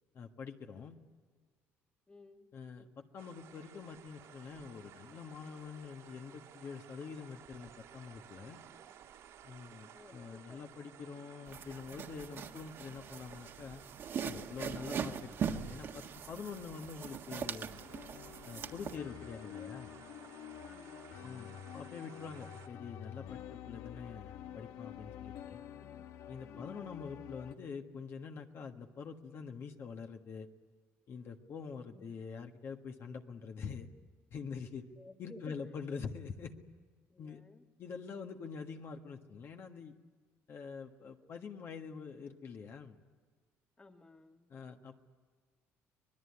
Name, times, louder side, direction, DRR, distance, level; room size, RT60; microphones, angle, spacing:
voice 1, 0.1-1.0 2.5-8.6 9.4-13.8 14.2-17.8 18.4-19.9 21.2-25.6 26.3-30.5 31.1-33.9 34.3-34.8 35.2-36.5 37.2-37.4 37.8-39.9 40.5-43.0 44.5-45.0, left 5 dB, 50° left, 4 dB, 1.6 m, -45 dB
voice 2, 2.1-2.5 9.9-10.6 20.6-21.2 25.8-26.1 26.5-27.0 31.9-32.2 35.0-35.6 37.1-37.6 43.8-44.5, left 2 dB, 20° left, 6 dB, 1.6 m, -56 dB
sound 1, 3.2-22.7, right 9 dB, 75° right, 2.8 m, -56 dB
sound 2, 11.5-19.0, right 7 dB, 50° right, 1.6 m, -41 dB
sound 3, 17.8-27.5, left 10 dB, 85° left, 1.3 m, -49 dB
25.0 x 20.0 x 9.8 m, 1.5 s
cardioid pair, 110°, 5 cm